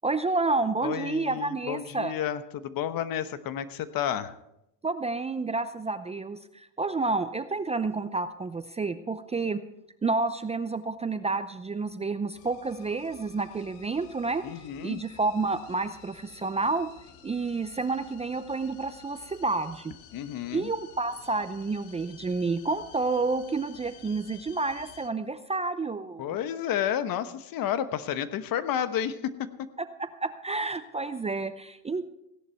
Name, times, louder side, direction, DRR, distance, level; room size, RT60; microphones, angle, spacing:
voice 1, 0.0-2.1 4.8-9.6 10.0-14.4 14.8-16.9 17.2-19.9 20.5-26.3 30.2-32.1, right 3 dB, 15° right, 11 dB, 0.6 m, -30 dB
voice 2, 0.8-4.3 14.4-15.0 20.1-20.7 26.2-29.3, left 10 dB, 50° left, 13 dB, 1.1 m, -31 dB
sound 1, 12.3-25.1, left 8 dB, 70° left, 1.7 m, -53 dB
16.5 x 11.0 x 4.5 m, 0.83 s
supercardioid pair, 100°, 45 cm